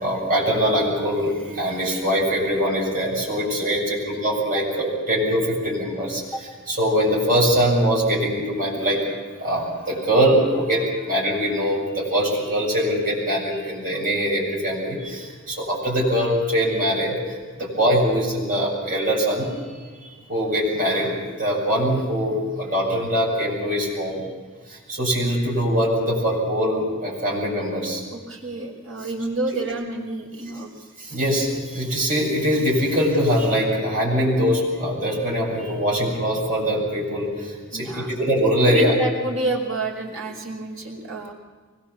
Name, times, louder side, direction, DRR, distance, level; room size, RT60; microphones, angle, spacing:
voice 1, 0.0-6.2 6.7-19.6 20.0-24.2 24.7-28.0 31.0-38.9, equal, 40° right, -3 dB, 7.9 m, -22 dB
voice 2, 28.1-30.7 37.7-38.1 38.6-41.3, right 2 dB, 75° right, -1 dB, 4.8 m, -28 dB
24.0 x 21.0 x 7.3 m, 1.4 s
head